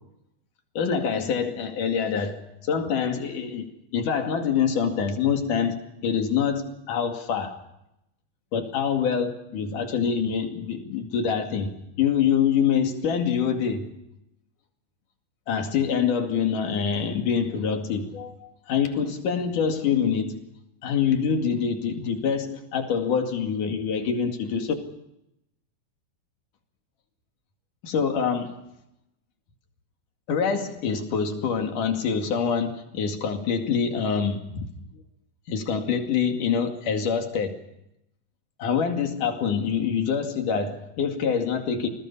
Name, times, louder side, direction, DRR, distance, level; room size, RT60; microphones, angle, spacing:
voice 1, 0.8-7.6 8.5-13.9 15.5-20.4 20.8-24.7 27.8-28.6 30.3-34.7 35.5-37.6 38.6-41.9, left 7 dB, 75° left, 3.8 m, -25 dB
28.5 x 20.0 x 5.7 m
omnidirectional pair, 3.8 m